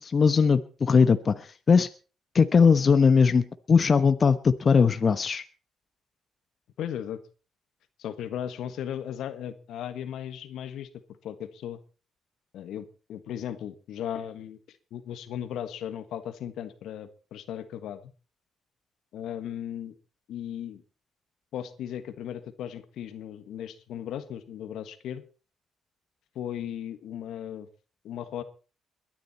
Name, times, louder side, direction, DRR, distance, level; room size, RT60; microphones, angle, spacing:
voice 1, 0.0-1.3 1.7-1.9 2.3-5.4, left 5 dB, 40° left, 11 dB, 1.1 m, -20 dB
voice 2, 6.8-7.2 8.0-11.8 12.5-18.0 19.1-19.9 20.3-20.8 21.5-25.2 26.3-27.7 28.0-28.4, left 10 dB, 80° left, 12 dB, 1.5 m, -36 dB
22.0 x 10.5 x 4.3 m, 0.36 s
cardioid pair, 90°, 0 cm